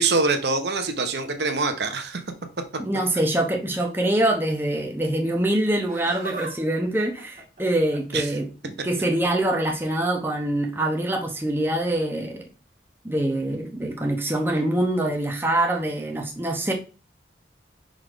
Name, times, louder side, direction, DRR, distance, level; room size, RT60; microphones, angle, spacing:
voice 1, 0.0-2.2 8.1-8.2, right 3 dB, 70° right, 0.9 m, -24 dB
voice 2, 2.8-12.4 13.0-16.7, right 1 dB, 10° right, 1.0 m, -24 dB
Laughter, 5.7-6.5 6.8-8.2 9.1-9.5 10.8-11.0 11.9-12.0, right 3 dB, 40° right, 2.0 m, -39 dB
5.0 x 4.0 x 4.9 m
head